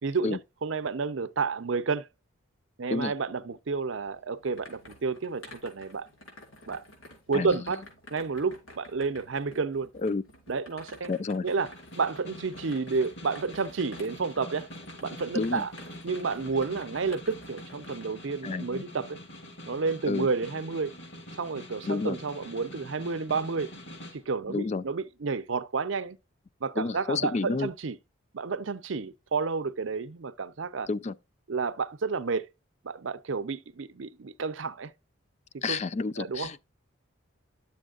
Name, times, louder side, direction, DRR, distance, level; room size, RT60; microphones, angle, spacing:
voice 1, 0.0-2.1 2.8-6.1 6.7-6.8 7.3-7.8 8.1-9.9 10.5-11.1 11.4-14.7 15.0-15.7 16.0-19.2 19.7-20.9 21.4-23.7 24.1-26.2 26.6-28.0 28.3-30.9 31.5-32.4 32.8-34.9 35.5-35.8 36.2-36.5, right 4 dB, 70° right, 0.6 m, -30 dB
sound 1, 4.0-18.0, left 1 dB, 80° left, 4.2 m, -51 dB
voice 2, 11.1-11.5 15.3-15.6 18.4-18.8 20.1-20.3 21.9-22.2 24.5-24.8 26.8-27.7 30.9-31.1 35.6-36.6, left 3 dB, 35° left, 0.4 m, -30 dB
Snare drum, 11.4-24.2, left 1 dB, 60° left, 2.2 m, -45 dB
11.0 x 7.1 x 2.4 m
head